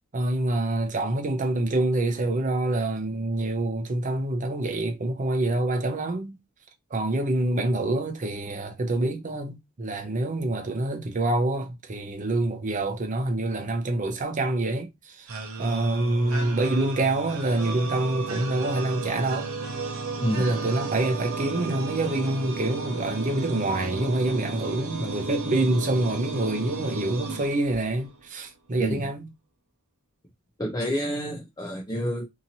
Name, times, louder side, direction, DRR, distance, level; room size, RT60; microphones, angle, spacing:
voice 1, 0.0-6.4 6.9-15.3 15.6-19.5 20.3-29.3, right 2 dB, 40° right, 0.6 m, -26 dB
sound 1, 15.3-28.2, right 3 dB, 90° right, 0.7 m, -33 dB
voice 2, 30.6-32.3, equal, 20° left, 0.5 m, -28 dB
2.8 x 2.7 x 2.7 m
head